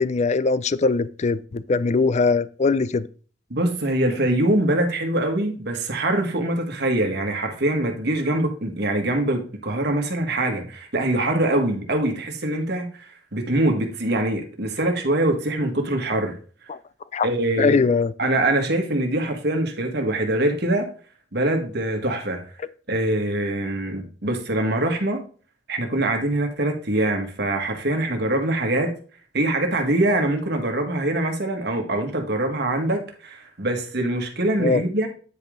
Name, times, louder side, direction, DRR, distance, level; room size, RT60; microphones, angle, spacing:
voice 1, 0.0-3.1 16.7-16.8 17.1-17.3 17.6-18.1 34.6-34.8, left 4 dB, 35° left, 0.4 m, -21 dB
voice 2, 3.5-13.0 13.3-16.4 17.2-17.8 18.2-20.9 21.3-22.4 22.9-25.2 25.7-28.9 29.3-35.1, right 1 dB, 60° right, 1.6 m, -23 dB
9.5 x 5.2 x 3.7 m
head